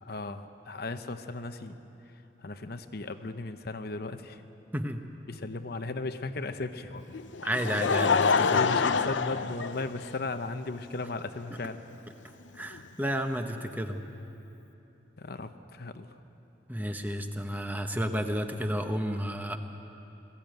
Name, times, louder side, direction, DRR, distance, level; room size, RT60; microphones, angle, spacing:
voice 1, 0.0-1.8 2.4-4.4 5.3-7.1 8.5-11.8 15.2-16.1, left 3 dB, 55° left, 9 dB, 0.8 m, -36 dB
Laughter, 7.1-10.3 11.2-11.3 12.7-12.8, left 5 dB, 90° left, 0.6 m, -26 dB
voice 2, 7.4-8.6 12.5-14.0 16.7-19.6, equal, 10° right, 6 dB, 1.0 m, -31 dB
21.0 x 14.5 x 9.2 m, 2.9 s
head